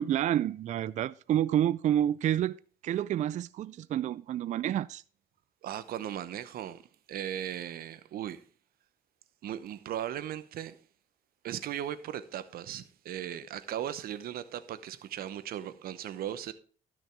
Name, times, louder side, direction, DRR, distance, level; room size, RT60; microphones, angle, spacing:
voice 1, 0.0-2.6 2.8-5.0, right 11 dB, 45° right, 0.4 m, -29 dB
voice 2, 5.6-6.8 7.1-8.4 9.4-10.8 11.4-16.5, right 11 dB, 60° right, 0.9 m, -37 dB
12.5 x 6.2 x 4.6 m
cardioid pair, 110°, 17 cm